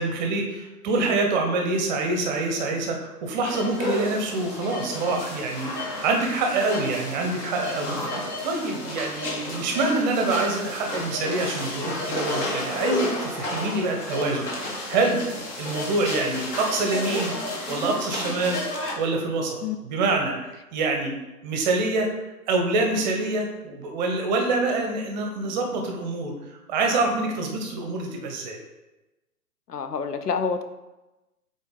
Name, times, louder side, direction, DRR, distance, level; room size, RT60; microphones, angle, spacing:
voice 1, 0.0-5.7 6.0-7.9 8.4-15.2 15.6-17.3 17.7-18.6 19.0-19.6 19.8-21.1 21.4-22.1 22.5-26.3 26.7-28.6, right 3 dB, 30° right, 2 dB, 0.9 m, -26 dB
sound 1, 3.4-18.9, left 1 dB, 20° left, 0.8 m, -31 dB
voice 2, 29.7-30.6, left 5 dB, 75° left, 9 dB, 0.7 m, -27 dB
6.9 x 3.9 x 4.0 m, 1.0 s
figure-of-eight pair, 125°, 47 cm